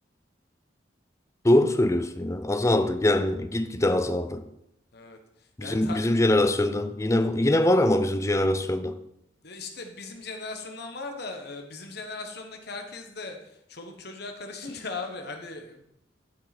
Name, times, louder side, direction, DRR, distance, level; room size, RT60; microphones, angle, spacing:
voice 1, 1.4-4.4 5.6-8.9, left 1 dB, 15° left, 0.5 m, -23 dB
voice 2, 4.9-6.0 9.4-15.8, left 3 dB, 60° left, 1.2 m, -38 dB
12.5 x 5.4 x 4.3 m
head